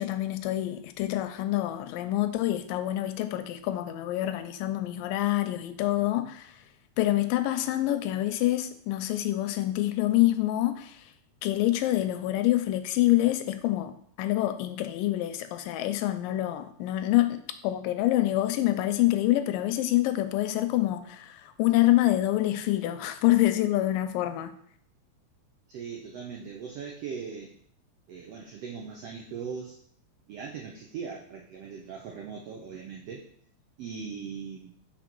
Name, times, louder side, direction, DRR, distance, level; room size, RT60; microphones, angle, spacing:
voice 1, 0.0-6.5 7.0-11.0 11.4-24.6, left 15 dB, 85° left, 9 dB, 2.3 m, -26 dB
voice 2, 25.7-27.5 28.1-29.7 30.3-33.2 33.8-34.7, right 6 dB, 90° right, 1 dB, 1.3 m, -39 dB
5.2 x 4.2 x 6.0 m, 0.63 s
omnidirectional pair, 3.8 m